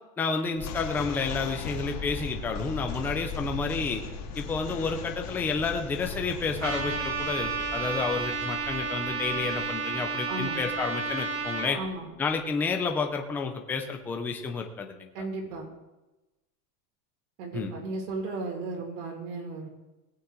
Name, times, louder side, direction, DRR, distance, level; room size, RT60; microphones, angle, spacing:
voice 1, 0.2-4.0 4.4-11.8 12.2-15.1 17.5-17.7, left 4 dB, 5° left, 4 dB, 0.3 m, -30 dB
sound 1, 0.6-11.9, left 4 dB, 35° left, 2.1 m, -39 dB
Trumpet, 6.6-11.7, right 5 dB, 30° right, 1.4 m, -31 dB
voice 2, 10.3-10.6 11.7-12.1 15.1-15.7 17.4-19.7, right 3 dB, 75° right, 0 dB, 5.0 m, -35 dB
19.5 x 8.7 x 3.7 m, 1.0 s
supercardioid pair, 150°, 48 cm